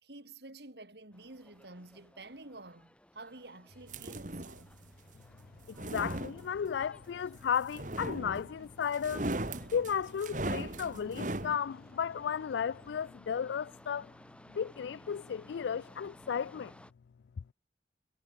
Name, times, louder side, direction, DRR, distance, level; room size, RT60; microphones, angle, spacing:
voice 1, 0.0-4.7, right 2 dB, 70° right, 3.3 m, -50 dB
sound 1, 1.1-16.9, equal, 5° left, 5.8 m, -58 dB
Engine, 3.7-13.1, left 1 dB, 55° left, 5.0 m, -60 dB
sound 2, 3.9-4.7 5.6-6.8 7.7-8.6 8.9-11.6, right 1 dB, 45° right, 2.4 m, -38 dB
voice 2, 5.9-9.3 9.7-14.1 14.5-16.7, left 7 dB, 85° left, 0.4 m, -34 dB
head